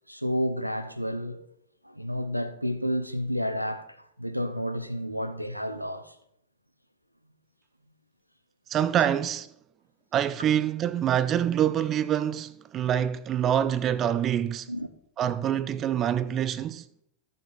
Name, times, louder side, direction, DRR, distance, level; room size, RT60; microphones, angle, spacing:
voice 1, 0.1-1.5 1.8-6.2 14.7-14.9, equal, 90° right, 0.6 m, -31 dB
voice 2, 8.7-9.5 10.1-14.7 15.2-16.9, right 10 dB, 30° right, 0.5 m, -26 dB
13.5 x 6.8 x 3.9 m
figure-of-eight pair, 90°, 0 cm